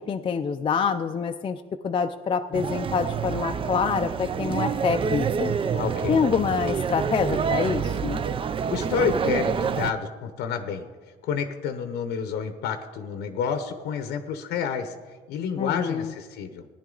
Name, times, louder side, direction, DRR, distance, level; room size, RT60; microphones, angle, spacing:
voice 1, 0.1-5.5 6.1-8.2 15.6-16.1, left 6 dB, 30° left, 5 dB, 0.4 m, -26 dB
sound 1, 2.5-9.9, right 6 dB, 30° right, 0.5 m, -27 dB
voice 2, 5.7-6.2 8.7-10.9 11.2-16.7, left 7 dB, 85° left, 8 dB, 0.9 m, -29 dB
16.0 x 10.0 x 3.9 m, 1.4 s
cardioid pair, 110°, 17 cm